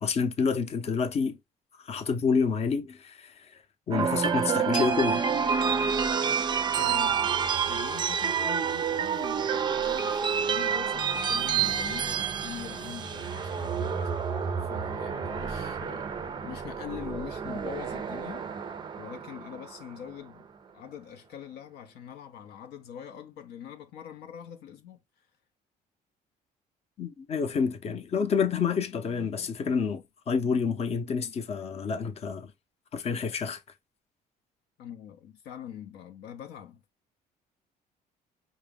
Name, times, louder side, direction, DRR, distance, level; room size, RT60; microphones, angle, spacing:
voice 1, 0.0-1.4 1.8-3.6 3.9-5.3 27.0-32.5 32.9-33.6, left 5 dB, 40° left, 0.6 m, -28 dB
sound 1, 3.9-20.1, right 6 dB, 25° right, 0.4 m, -29 dB
voice 2, 6.8-7.4 7.7-18.7 19.0-20.5 20.7-25.3 34.8-36.8, left 9 dB, 70° left, 0.6 m, -43 dB
4.9 x 2.0 x 3.5 m
cardioid pair, 110°, 17 cm